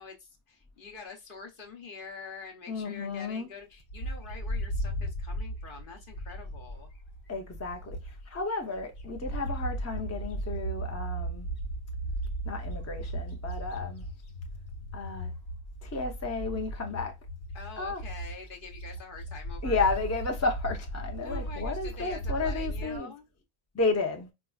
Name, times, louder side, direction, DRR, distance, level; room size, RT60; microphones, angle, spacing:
voice 1, 0.0-6.9 17.5-19.9 21.2-23.2, left 5 dB, 55° left, 0.9 m, -45 dB
voice 2, 2.7-3.5 7.3-8.0 8.3-11.5 12.4-14.0 14.9-15.3 15.8-17.1 17.8-18.0 19.6-23.1 23.7-24.3, left 3 dB, 20° left, 0.4 m, -32 dB
Bird, 3.9-8.4 8.8-23.0, right 1 dB, 80° left, 1.1 m, -36 dB
4.5 x 2.3 x 2.3 m
omnidirectional pair, 1.1 m